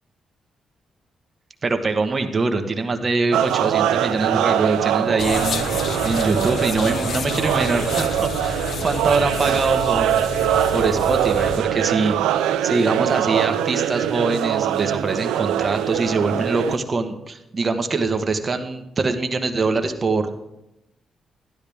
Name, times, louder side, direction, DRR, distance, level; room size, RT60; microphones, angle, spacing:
voice 1, 1.6-5.7 6.0-10.1 10.7-12.2 12.6-20.3, right 3 dB, 40° right, 6 dB, 1.1 m, -23 dB
sound 1, 3.3-16.8, right 11 dB, 90° right, 0.4 m, -22 dB
sound 2, 5.2-11.6, left 6 dB, 65° left, 0.7 m, -30 dB
12.0 x 10.0 x 3.5 m, 0.91 s
supercardioid pair, 60°, 0 cm